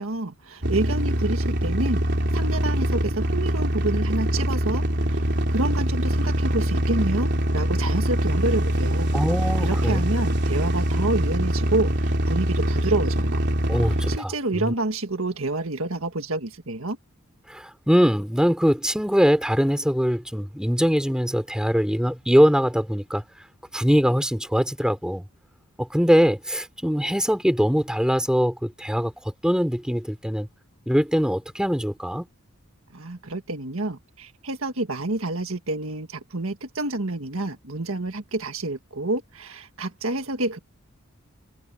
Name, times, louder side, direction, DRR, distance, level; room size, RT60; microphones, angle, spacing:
voice 1, 0.0-2.1 2.3-9.1 9.6-13.4 13.8-17.0 32.9-40.6, right 2 dB, 70° right, 1.8 m, -28 dB
sound 1, 0.6-14.2, right 1 dB, 55° right, 3.1 m, -23 dB
voice 2, 9.1-10.1 13.7-14.7 17.5-23.2 23.7-25.2 25.8-30.5 30.9-32.3, equal, 5° right, 3.1 m, -22 dB
head